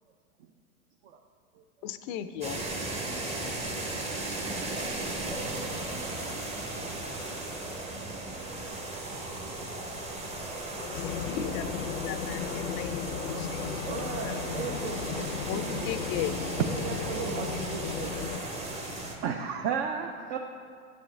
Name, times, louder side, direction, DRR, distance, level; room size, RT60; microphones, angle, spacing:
voice 1, 1.8-2.6 10.7-14.4 15.5-16.5, left 10 dB, 40° left, 11 dB, 0.4 m, -38 dB
sound 1, 2.4-19.2, right 2 dB, 15° right, 0.8 m, -36 dB
sound 2, 10.9-18.4, left 8 dB, 85° left, 0.6 m, -35 dB
voice 2, 13.8-15.9 16.4-18.2, right 5 dB, 60° right, -3 dB, 1.1 m, -38 dB
voice 3, 16.8-17.4 19.2-20.4, right 6 dB, 45° right, 4 dB, 0.5 m, -33 dB
8.6 x 7.1 x 3.2 m, 2.2 s
hypercardioid pair, 110°, 44 cm